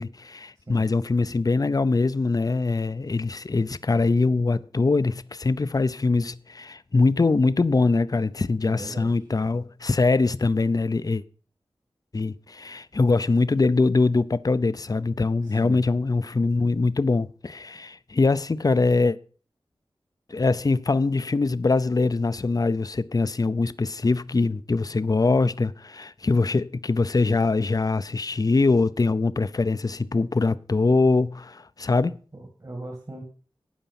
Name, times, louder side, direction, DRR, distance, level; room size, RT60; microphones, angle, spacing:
voice 1, 0.0-11.2 12.1-19.2 20.3-32.2, left 3 dB, 40° left, 0.6 m, -23 dB
voice 2, 0.6-0.9 8.6-9.1 15.4-15.8 32.3-33.2, right 1 dB, 40° right, 2.5 m, -38 dB
12.5 x 8.8 x 5.8 m
wide cardioid pair, 80°, 10 cm